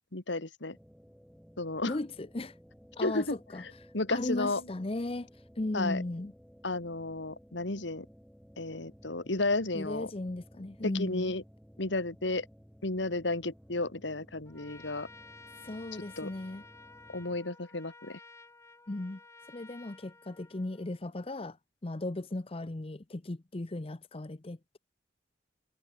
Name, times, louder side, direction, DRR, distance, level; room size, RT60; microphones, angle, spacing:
voice 1, 0.1-0.8 1.6-2.0 3.0-4.6 5.7-6.0 6.6-8.1 8.6-10.1 10.8-11.4 11.8-12.5 12.8-15.1 16.2-16.3 17.1-18.2, left 2 dB, 80° left, 2.3 m, -33 dB
sound 1, 0.7-17.4, equal, ahead, 4.5 m, -57 dB
voice 2, 1.9-2.6 3.0-3.6 4.1-5.3 5.6-6.3 9.7-11.3 15.6-16.6 18.9-19.2 19.5-21.6 21.8-24.8, left 2 dB, 30° left, 0.7 m, -36 dB
Trumpet, 14.5-21.0, left 3 dB, 15° left, 2.7 m, -54 dB
head